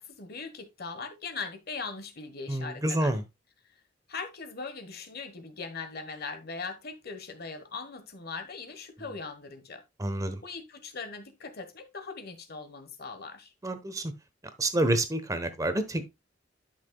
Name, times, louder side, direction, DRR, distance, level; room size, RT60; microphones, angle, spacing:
voice 1, 0.0-3.1 4.1-9.8 10.4-13.5, left 4 dB, 55° left, 1.3 m, -40 dB
voice 2, 2.5-3.2 10.0-10.4 13.6-14.1 14.6-16.1, right 1 dB, 20° right, 1.1 m, -28 dB
11.0 x 5.9 x 2.3 m
head